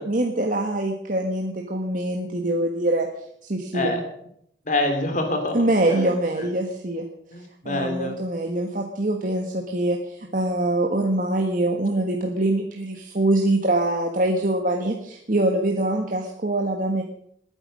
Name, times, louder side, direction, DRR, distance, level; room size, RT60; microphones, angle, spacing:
voice 1, 0.0-3.1 3.4-4.0 5.5-7.1 7.6-17.0, right 1 dB, 45° right, 2 dB, 1.6 m, -24 dB
voice 2, 4.7-6.1 6.4-6.5 7.3-8.1, left 2 dB, 40° left, 5 dB, 2.9 m, -26 dB
20.0 x 9.8 x 6.4 m, 0.71 s
head